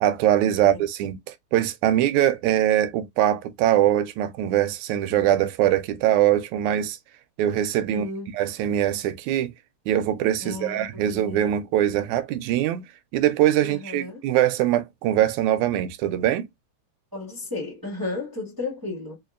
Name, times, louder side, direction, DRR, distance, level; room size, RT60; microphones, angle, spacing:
voice 1, 0.0-7.0 7.4-8.1 8.3-9.5 9.9-12.8 13.1-16.5, right 12 dB, 80° right, 2.0 m, -22 dB
voice 2, 7.9-8.3 10.4-11.5 13.6-14.2 17.1-19.2, left 2 dB, 30° right, 0.3 m, -34 dB
5.1 x 2.5 x 2.4 m
omnidirectional pair, 3.4 m